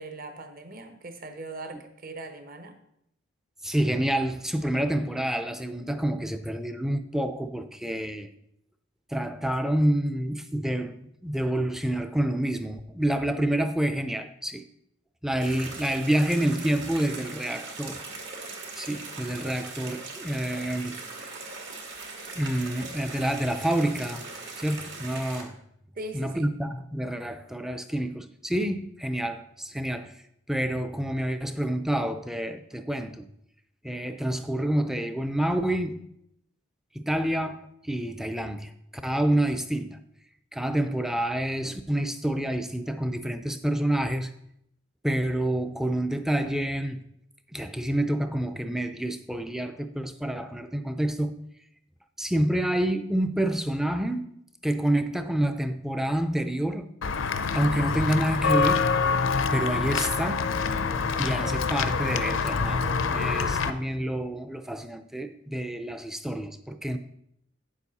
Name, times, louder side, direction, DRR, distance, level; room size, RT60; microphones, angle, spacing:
voice 1, 0.0-2.8 25.9-26.5, right 2 dB, 45° right, 1.0 m, -40 dB
voice 2, 3.6-8.3 9.1-14.6 15.2-18.0 18.8-21.0 22.4-24.3 24.6-25.6 26.1-30.2 30.5-33.3 33.8-36.0 36.9-38.7 39.0-40.0 40.5-44.3 45.0-47.0 47.5-51.3 52.2-54.3 54.6-56.9 57.5-58.9 59.5-60.5 61.2-67.0, right 1 dB, ahead, 0.4 m, -28 dB
sound 1, 15.4-25.4, right 3 dB, 65° right, 2.1 m, -40 dB
Walk footsteps / Bell, 57.0-63.7, left 5 dB, 70° left, 0.6 m, -26 dB
9.0 x 7.2 x 4.1 m
head